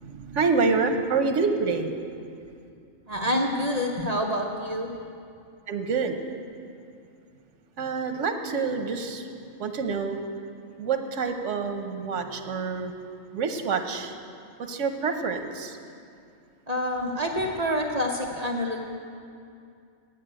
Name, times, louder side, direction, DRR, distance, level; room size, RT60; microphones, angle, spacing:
voice 1, 0.0-1.9 5.7-6.1 7.8-9.2 9.6-10.2 10.8-12.9 13.3-14.1 14.7-15.8, right 4 dB, 85° right, 7 dB, 1.2 m, -27 dB
voice 2, 3.1-4.9 16.7-18.8, equal, 35° right, 1 dB, 0.8 m, -27 dB
8.8 x 8.3 x 8.8 m, 2.5 s
omnidirectional pair, 1.2 m